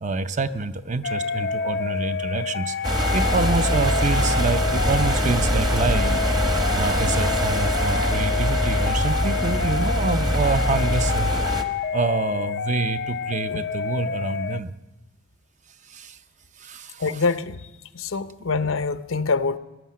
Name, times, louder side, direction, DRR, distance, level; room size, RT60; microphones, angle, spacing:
voice 1, 0.0-2.8 3.1-6.2 6.7-11.3 11.9-14.7 15.9-16.2 16.6-17.2, right 3 dB, 35° right, 0.6 m, -27 dB
sound 1, 1.0-14.6, left 6 dB, 55° left, 0.4 m, -28 dB
sound 2, 2.8-11.6, right 1 dB, 20° right, 1.0 m, -23 dB
sound 3, 4.6-12.2, equal, 65° right, 2.1 m, -35 dB
voice 2, 17.0-17.7 17.9-19.6, left 4 dB, 90° left, 0.7 m, -25 dB
17.0 x 11.0 x 7.5 m
head